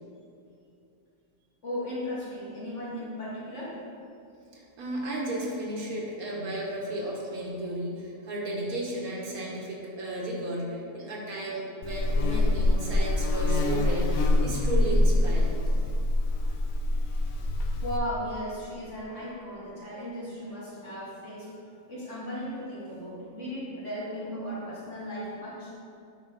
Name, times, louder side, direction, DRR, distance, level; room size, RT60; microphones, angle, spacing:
voice 1, 1.6-3.8 17.8-21.5 21.9-25.7, equal, 50° left, -8 dB, 2.6 m, -36 dB
voice 2, 4.5-15.6, right 1 dB, 65° right, -3 dB, 1.7 m, -34 dB
Buzz, 11.8-18.0, left 1 dB, 65° left, 1.1 m, -25 dB
9.4 x 5.6 x 4.1 m, 2.6 s
omnidirectional pair, 1.7 m